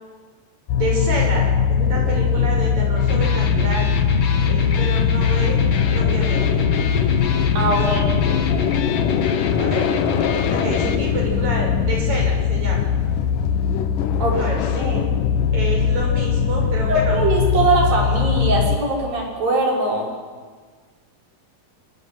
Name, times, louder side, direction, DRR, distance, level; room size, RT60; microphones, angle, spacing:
sound 1, 0.7-18.8, left 7 dB, 75° left, 2.6 m, -20 dB
voice 1, 0.8-3.9 4.5-6.6 7.6-8.1 9.6-9.9 10.3-12.9 14.2-15.0 15.5-17.2, right 2 dB, 55° right, 0 dB, 7.6 m, -28 dB
Electric guitar, 3.0-11.0, left 6 dB, 55° left, 2.4 m, -27 dB
voice 2, 7.5-8.0 14.2-14.4 14.8-15.0 16.9-20.1, right 2 dB, 85° right, -3 dB, 7.5 m, -21 dB
27.5 x 23.0 x 7.7 m, 1.5 s
omnidirectional pair, 3.9 m